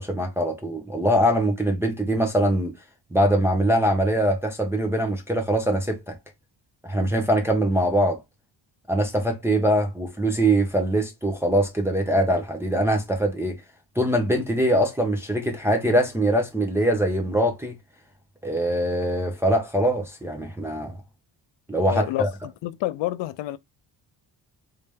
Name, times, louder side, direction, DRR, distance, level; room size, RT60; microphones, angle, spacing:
voice 1, 0.0-2.7 3.1-6.1 6.8-8.2 8.9-13.6 14.0-17.7 18.4-21.0 21.7-22.3, right 1 dB, 5° right, 0.6 m, -23 dB
voice 2, 21.9-22.3 22.6-23.6, left 15 dB, 75° left, 0.5 m, -28 dB
3.3 x 2.8 x 3.5 m
cardioid pair, 125°, 44 cm